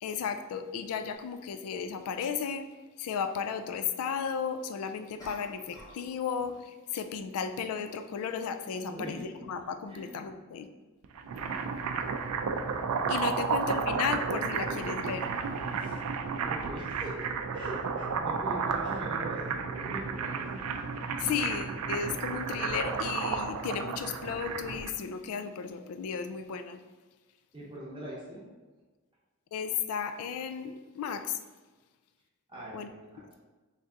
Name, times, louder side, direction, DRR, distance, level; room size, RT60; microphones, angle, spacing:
voice 1, 0.0-2.7 3.0-10.7 13.1-15.3 21.2-26.8 29.5-31.3 32.7-32.9, left 6 dB, 80° left, 8 dB, 0.3 m, -34 dB
sound 1, 5.2-6.1 6.3-6.7, equal, 15° left, 0.7 m, -49 dB
voice 2, 8.9-9.3 9.9-10.1 13.4-13.5 15.8-16.0 16.4-20.6 27.5-28.4 32.5-33.2, equal, 20° right, -6 dB, 0.7 m, -42 dB
sound 2, 11.0-24.9, right 5 dB, 90° right, 0.4 m, -32 dB
3.3 x 2.6 x 3.6 m, 1.3 s
head